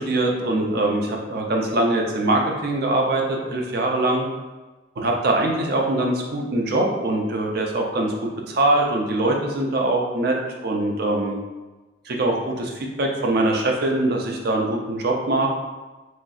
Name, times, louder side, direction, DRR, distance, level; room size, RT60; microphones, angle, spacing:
voice 1, 0.0-4.3 5.0-10.3 10.6-11.4 12.1-15.5, right 2 dB, 50° right, 0 dB, 0.4 m, -22 dB
3.0 x 2.6 x 2.3 m, 1.2 s
head